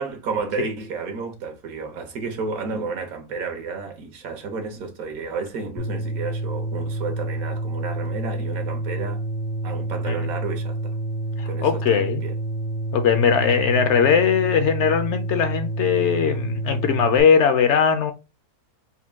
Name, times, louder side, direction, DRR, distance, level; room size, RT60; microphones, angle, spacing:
voice 1, 0.0-9.2 9.6-11.0 11.5-12.4, right 4 dB, 80° right, 1.4 m, -31 dB
sound 1, 5.8-17.2, right 2 dB, 50° left, 0.4 m, -28 dB
voice 2, 11.4-12.2 12.9-18.1, left 7 dB, 65° left, 0.8 m, -19 dB
4.3 x 2.2 x 3.4 m
omnidirectional pair, 1.5 m